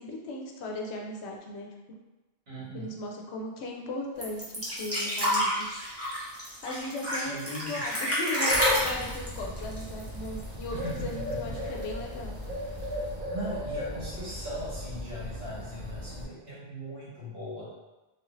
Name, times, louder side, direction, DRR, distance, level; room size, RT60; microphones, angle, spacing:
voice 1, 0.0-2.0 2.7-4.4 4.8-5.8 6.6-12.4, left 2 dB, 85° left, 1 dB, 0.9 m, -37 dB
voice 2, 2.5-2.9 7.1-7.9 10.7-11.7 13.3-17.7, equal, 70° right, -10 dB, 1.8 m, -39 dB
sound 1, 4.2-10.6 10.9-11.0 11.3-12.0 12.8-12.9, equal, 15° right, 0.8 m, -29 dB
Bird, 8.5-16.2, equal, 50° right, 0.7 m, -37 dB
3.3 x 2.5 x 3.1 m, 1.1 s
omnidirectional pair, 1.1 m